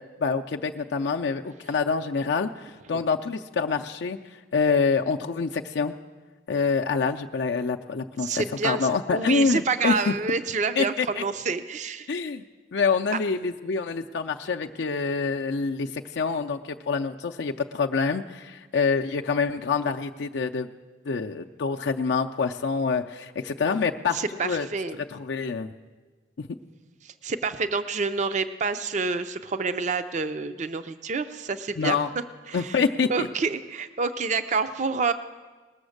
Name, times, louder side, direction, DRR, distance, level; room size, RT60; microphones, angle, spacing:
voice 1, 0.0-4.2 4.5-5.9 6.5-10.1 10.8-11.2 12.1-12.4 12.7-20.7 21.1-24.7 25.1-25.7 31.8-32.1 32.5-33.3, left 5 dB, 70° left, 3 dB, 0.4 m, -26 dB
voice 2, 8.2-12.1 24.1-25.0 27.0-32.0 32.5-32.8 33.1-35.1, right 4 dB, 40° right, 10 dB, 0.5 m, -28 dB
19.5 x 7.0 x 6.5 m, 1.3 s
head